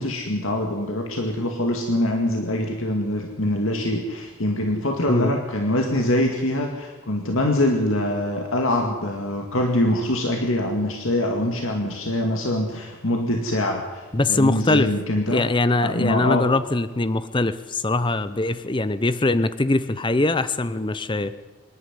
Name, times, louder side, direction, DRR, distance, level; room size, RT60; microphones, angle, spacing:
voice 1, 0.0-15.5 15.8-16.5, left 1 dB, 60° left, 2 dB, 2.1 m, -24 dB
voice 2, 14.1-14.9 15.3-21.3, left 2 dB, 20° left, 13 dB, 0.6 m, -22 dB
25.0 x 11.5 x 9.9 m, 1.3 s
head